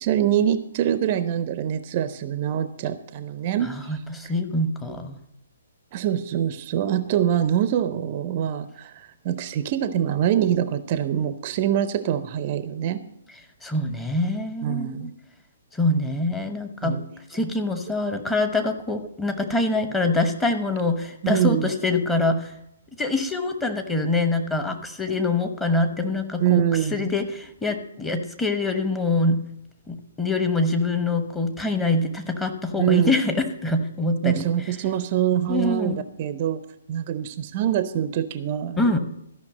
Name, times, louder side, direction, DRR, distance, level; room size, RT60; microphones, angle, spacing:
voice 1, 0.0-3.7 5.9-13.0 14.6-15.1 16.8-17.0 21.2-21.7 26.4-27.1 32.8-33.2 34.2-36.6 36.9-38.8, right 10 dB, 35° right, 13 dB, 0.5 m, -24 dB
voice 2, 3.7-5.2 13.6-14.9 15.7-17.0 17.3-22.5 23.0-26.6 26.9-29.4 29.9-34.5 35.5-36.0 38.8-39.0, left 2 dB, 10° left, 6 dB, 1.0 m, -24 dB
13.0 x 5.8 x 7.5 m, 0.78 s
figure-of-eight pair, 125°, 0 cm